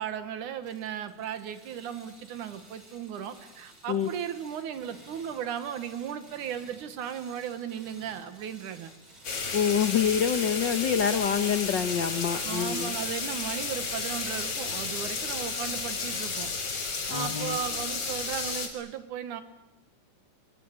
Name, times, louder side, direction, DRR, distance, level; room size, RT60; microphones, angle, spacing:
voice 1, 0.0-8.9 12.4-16.5 17.1-19.4, right 9 dB, 75° right, 11 dB, 3.0 m, -36 dB
sound 1, 0.6-17.6, right 1 dB, 35° right, 8.4 m, -54 dB
sound 2, 9.2-18.7, left 4 dB, 50° left, 4.1 m, -32 dB
voice 2, 9.5-12.9 17.1-17.6, left 8 dB, 65° left, 9 dB, 1.1 m, -26 dB
25.5 x 25.0 x 8.6 m, 0.91 s
omnidirectional pair, 3.6 m